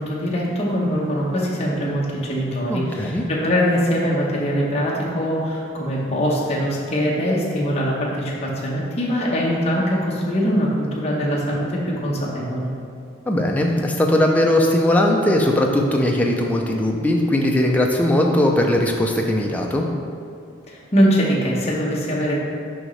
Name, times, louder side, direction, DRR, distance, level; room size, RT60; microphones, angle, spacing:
voice 1, 0.0-12.7 20.7-22.4, equal, 30° left, -4 dB, 0.9 m, -22 dB
voice 2, 2.7-3.2 13.3-19.9, left 1 dB, 5° left, 0 dB, 0.4 m, -19 dB
6.3 x 5.1 x 3.2 m, 2.5 s
head